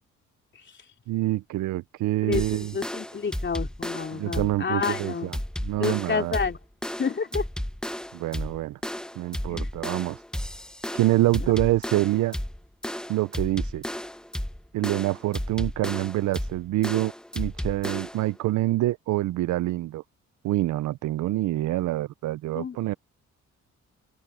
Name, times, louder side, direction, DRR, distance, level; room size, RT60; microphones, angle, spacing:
voice 1, 1.1-2.7 4.1-6.4 8.1-8.8 9.2-10.2 10.9-12.3 13.1-13.8 14.7-20.0 20.4-22.9, right 16 dB, 80° right, 0.6 m, -26 dB
voice 2, 2.2-5.3 5.8-6.6 7.0-7.5 9.5-9.7 11.4-11.5 22.6-22.8, left 5 dB, 40° left, 3.7 m, -29 dB
sound 1, 2.3-18.3, equal, 5° left, 0.9 m, -33 dB
open air
cardioid pair, 90°, 30 cm